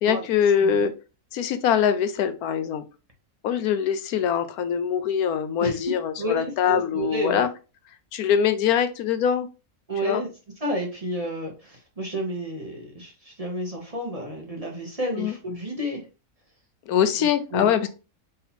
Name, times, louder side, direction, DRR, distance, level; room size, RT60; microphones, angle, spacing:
voice 1, 0.0-0.9 1.3-2.8 3.4-7.5 8.1-9.5 10.0-10.2 15.2-15.3 16.9-17.9, left 8 dB, 85° left, 10 dB, 1.1 m, -23 dB
voice 2, 6.2-7.4 9.9-10.3 10.6-16.1 17.2-17.9, equal, 30° right, -1 dB, 0.9 m, -31 dB
3.8 x 2.8 x 4.2 m, 0.31 s
omnidirectional pair, 1.5 m